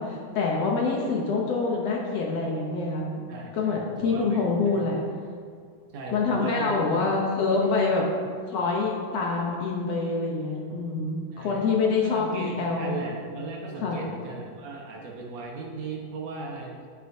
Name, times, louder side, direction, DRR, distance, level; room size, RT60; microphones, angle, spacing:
voice 1, 0.0-3.2 3.5-5.0 6.1-8.1 8.5-13.0 13.8-14.0, left 4 dB, 70° left, -2 dB, 1.5 m, -26 dB
voice 2, 3.3-4.8 5.9-7.1 11.3-11.7 12.0-16.7, right 3 dB, 60° right, -1 dB, 2.0 m, -37 dB
13.5 x 7.8 x 2.8 m, 2.1 s
omnidirectional pair, 4.1 m